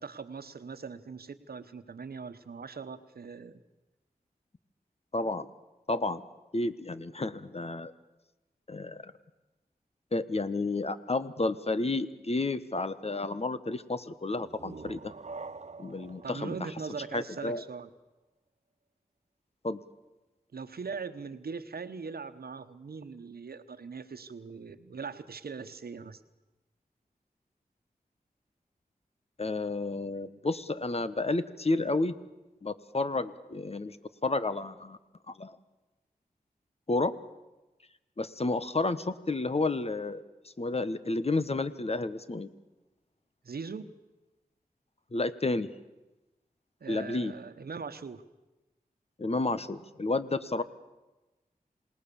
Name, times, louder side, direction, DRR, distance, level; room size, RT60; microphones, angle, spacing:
voice 1, 0.0-3.6 16.2-17.9 20.5-26.2 43.4-43.9 46.8-48.2, right 5 dB, 85° right, 11 dB, 1.2 m, -41 dB
voice 2, 5.1-5.5 5.9-6.2 6.5-7.9 8.7-9.1 10.1-15.1 15.8-16.5 17.1-17.6 19.6-19.8 29.4-32.2 32.6-34.0 34.2-35.0 35.3-35.6 36.9-37.1 38.2-42.5 45.1-45.7 46.9-47.3 49.2-50.6, left 2 dB, 40° left, 13 dB, 1.2 m, -31 dB
sound 1, 14.3-17.8, right 4 dB, 45° right, 0.7 m, -46 dB
27.5 x 19.0 x 7.1 m, 1.1 s
wide cardioid pair, 60°, 16 cm